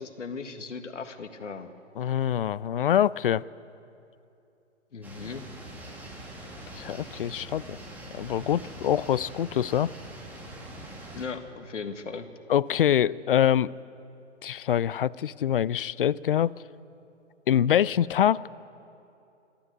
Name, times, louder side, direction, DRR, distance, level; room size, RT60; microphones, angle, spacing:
voice 1, 0.0-1.7 4.9-5.4 11.1-12.3, left 5 dB, 75° left, 8 dB, 1.8 m, -37 dB
voice 2, 2.0-3.4 6.8-7.8 8.1-9.9 12.5-13.7 14.4-16.5 17.5-18.6, left 10 dB, 50° left, 22 dB, 0.4 m, -25 dB
sound 1, 5.0-11.2, right 1 dB, 5° right, 2.9 m, -43 dB
26.0 x 13.0 x 8.0 m, 2.7 s
figure-of-eight pair, 135°, 37 cm